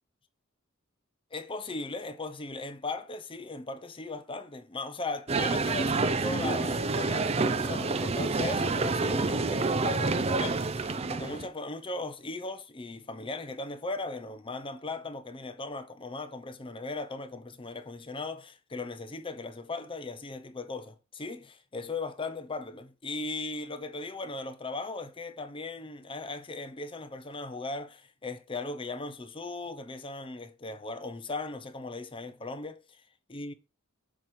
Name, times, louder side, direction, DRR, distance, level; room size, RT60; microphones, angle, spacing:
voice 1, 1.3-33.0 33.3-33.5, left 3 dB, 25° left, 0.7 m, -38 dB
sound 1, 5.3-11.5, right 3 dB, 30° right, 0.5 m, -28 dB
7.3 x 3.1 x 5.7 m
head